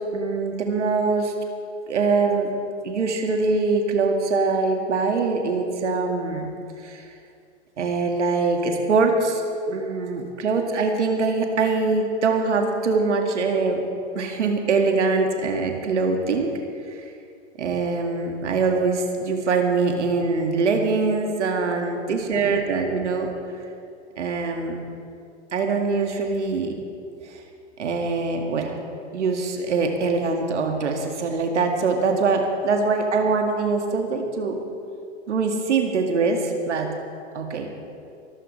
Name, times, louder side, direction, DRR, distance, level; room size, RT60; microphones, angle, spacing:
voice 1, 0.1-1.3 1.9-2.5 2.8-6.5 6.8-7.0 7.8-9.4 9.7-13.8 14.1-16.6 16.9-17.0 17.6-23.3 24.2-24.8 25.5-26.8 27.3-27.4 27.8-28.8 29.1-34.6 35.3-36.9 37.3-37.7, right 4 dB, 80° right, 3 dB, 2.0 m, -23 dB
22.5 x 14.5 x 3.3 m, 2.4 s
hypercardioid pair, 115°, 35 cm